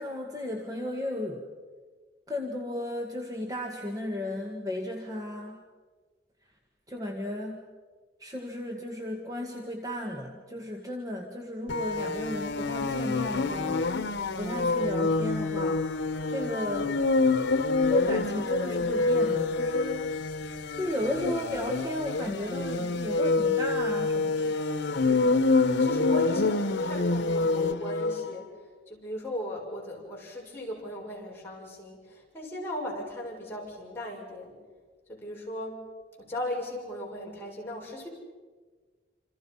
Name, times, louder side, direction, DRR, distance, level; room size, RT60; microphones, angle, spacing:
voice 1, 0.0-1.5 2.3-5.6 6.9-7.6 8.2-13.9 14.4-15.8 16.3-17.0 17.9-20.1 20.8-24.5, left 1 dB, 20° right, 2 dB, 1.9 m, -34 dB
sound 1, 11.7-28.3, left 3 dB, 85° left, 1.0 m, -27 dB
voice 2, 24.8-28.5 28.9-34.6 35.1-35.8 36.2-38.1, left 1 dB, 15° left, -4 dB, 6.7 m, -37 dB
28.0 x 27.5 x 5.7 m, 1.4 s
head